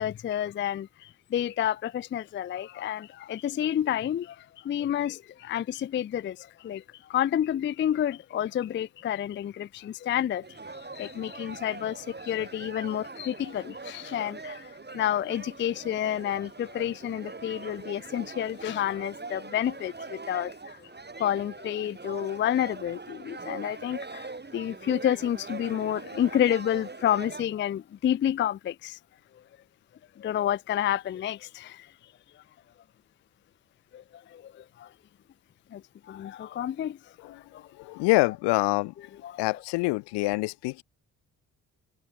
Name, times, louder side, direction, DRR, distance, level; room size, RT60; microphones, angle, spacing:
voice 1, 0.0-6.8 7.1-20.9 21.2-24.3 24.5-29.0 30.2-31.9 33.9-34.9 35.7-35.8 36.1-37.7 39.2-39.4, left 10 dB, 30° left, 0.5 m, -30 dB
sound 1, 10.4-27.5, right 3 dB, 25° right, 4.8 m, -42 dB
voice 2, 37.7-38.9 39.4-40.8, left 24 dB, 70° left, 1.4 m, -26 dB
figure-of-eight pair, 40°, 43 cm